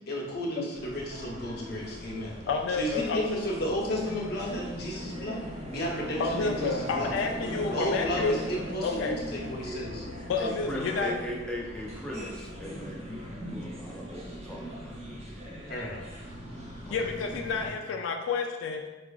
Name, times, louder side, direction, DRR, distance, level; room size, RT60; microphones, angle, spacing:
voice 1, 0.1-2.4 2.7-5.4 5.7-7.1 7.7-10.0 15.7-16.2, equal, 60° left, -3 dB, 0.8 m, -33 dB
sound 1, 0.7-17.7, equal, 35° right, 0.7 m, -40 dB
voice 2, 1.7-3.2 5.0-5.1 6.2-8.3 8.8-9.2 10.3-11.1 16.9-18.8, left 4 dB, 85° left, 3 dB, 0.3 m, -30 dB
voice 3, 10.4-15.3 16.9-17.4, equal, 5° left, -4 dB, 0.4 m, -38 dB
4.7 x 2.4 x 2.3 m, 1.2 s
head